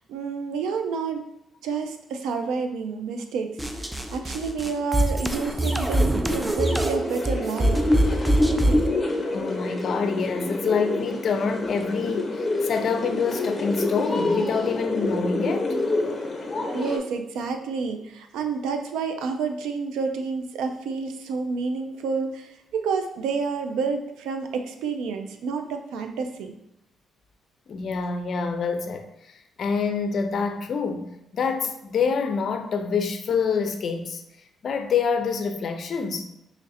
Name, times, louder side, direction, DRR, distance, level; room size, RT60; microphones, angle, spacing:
voice 1, 0.1-1.3 1.6-7.8 8.4-8.9 16.7-26.5, right 5 dB, 90° right, 0.4 m, -29 dB
sound 1, 3.6-8.9, equal, 5° right, 0.3 m, -23 dB
sound 2, 7.0-17.0, left 2 dB, 25° left, 0.9 m, -28 dB
voice 2, 9.3-15.8 27.7-29.1 29.6-34.2 34.6-36.2, left 5 dB, 55° left, 0.4 m, -26 dB
3.1 x 2.5 x 4.1 m
cardioid pair, 90°, 0 cm